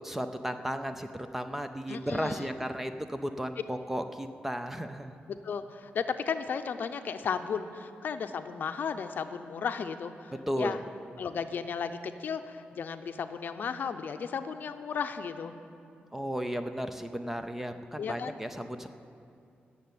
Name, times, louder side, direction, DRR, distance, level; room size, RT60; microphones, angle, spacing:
voice 1, 0.0-5.1 10.5-10.8 16.1-18.9, equal, 10° right, 8 dB, 0.5 m, -34 dB
voice 2, 1.9-2.5 5.3-10.8 11.2-15.5 18.0-18.4, left 6 dB, 55° left, 9 dB, 0.6 m, -34 dB
14.5 x 6.8 x 9.5 m, 2.5 s
wide cardioid pair, 170°, 4 cm